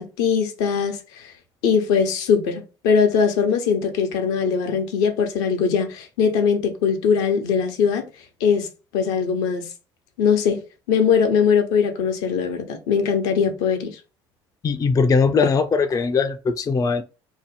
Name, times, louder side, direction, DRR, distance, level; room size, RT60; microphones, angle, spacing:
voice 1, 0.0-1.3 1.6-8.1 8.4-8.7 8.9-9.7 10.2-10.6 10.9-14.0, left 6 dB, 70° left, 0.6 m, -21 dB
voice 2, 14.6-17.0, left 5 dB, 25° left, 0.4 m, -20 dB
2.7 x 2.0 x 3.2 m
hypercardioid pair, 60°, 14 cm